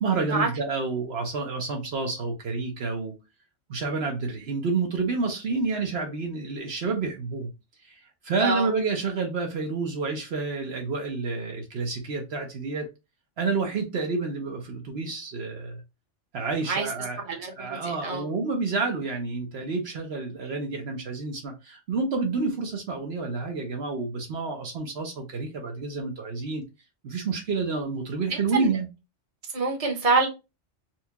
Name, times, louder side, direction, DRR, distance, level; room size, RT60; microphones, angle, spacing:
voice 1, 0.0-3.1 3.7-7.5 7.8-12.9 13.4-15.8 16.3-26.6 27.0-28.9, right 4 dB, 65° right, 1.0 m, -29 dB
voice 2, 17.3-18.3 28.3-28.7 29.5-30.3, right 4 dB, 35° right, 0.9 m, -26 dB
4.3 x 2.3 x 2.8 m
omnidirectional pair, 1.2 m